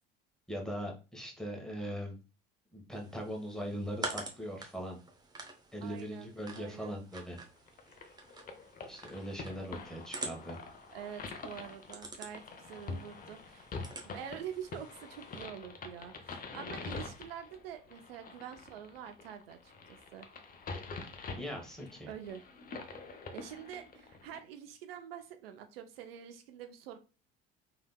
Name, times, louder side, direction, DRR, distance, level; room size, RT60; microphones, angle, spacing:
voice 1, 0.5-2.2 2.7-5.0 5.7-7.4 8.9-10.6 21.3-22.1, equal, ahead, 0 dB, 1.1 m, -40 dB
sound 1, 2.9-15.4, right 2 dB, 15° right, 0.7 m, -47 dB
voice 2, 5.8-7.0 10.9-13.7 14.1-20.3 22.1-22.4 23.3-27.0, right 9 dB, 80° right, 8 dB, 0.5 m, -46 dB
sound 2, 7.7-24.4, left 4 dB, 30° left, 0.6 m, -46 dB
3.2 x 2.8 x 2.2 m, 0.32 s
hypercardioid pair, 60°, 29 cm